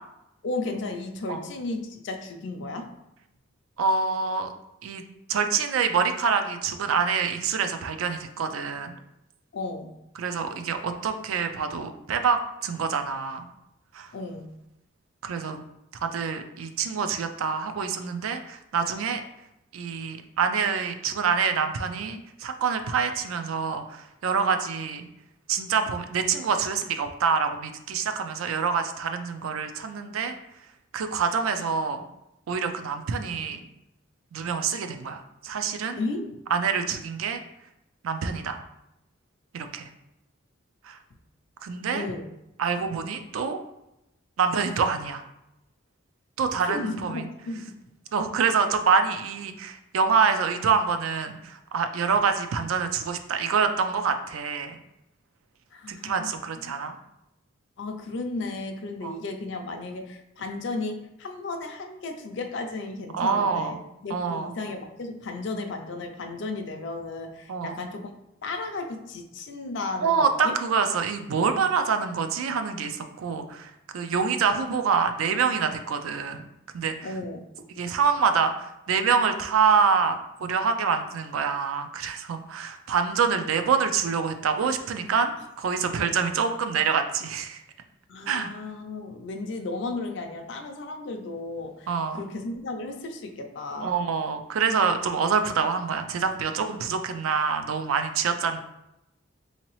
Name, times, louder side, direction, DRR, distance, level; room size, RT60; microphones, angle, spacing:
voice 1, 0.4-2.9 9.5-9.9 14.1-14.5 36.0-36.4 41.9-42.3 46.6-47.8 52.1-52.3 55.7-56.7 57.8-68.1 68.4-70.6 77.0-77.4 88.1-93.9, left 3 dB, 60° left, 4 dB, 0.4 m, -34 dB
voice 2, 3.8-4.5 4.8-5.0 5.3-8.9 10.2-13.5 13.9-14.1 15.2-15.6 16.0-19.2 19.7-25.1 25.5-30.3 30.9-32.1 32.5-33.6 34.3-36.0 36.5-37.4 38.0-38.6 39.5-39.9 40.8-41.0 41.6-42.1 42.6-43.6 44.4-45.2 46.4-47.3 48.1-54.8 55.9-56.9 59.0-59.1 63.1-63.8 64.1-64.6 67.5-67.8 70.0-76.4 76.7-77.0 77.8-87.6 88.3-88.5 91.9-92.3 93.8-98.6, right 6 dB, 90° right, 7 dB, 0.4 m, -26 dB
3.8 x 2.8 x 3.0 m, 0.87 s
head